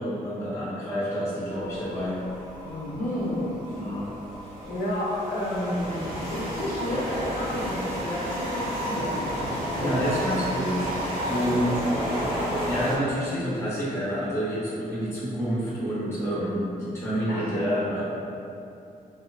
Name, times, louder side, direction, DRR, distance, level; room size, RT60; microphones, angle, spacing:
voice 1, 0.0-2.2 3.7-4.1 9.8-10.9 11.3-11.8 12.6-18.0, equal, 15° left, -9 dB, 0.6 m, -28 dB
sound 1, 1.5-13.0, equal, 75° right, 0.7 m, -32 dB
voice 2, 2.6-3.5 4.6-9.3 9.7-10.7 11.3-12.0 17.3-17.7, left 1 dB, 70° left, -8 dB, 0.6 m, -31 dB
2.6 x 2.0 x 2.3 m, 2.6 s
wide cardioid pair, 145°, 15 cm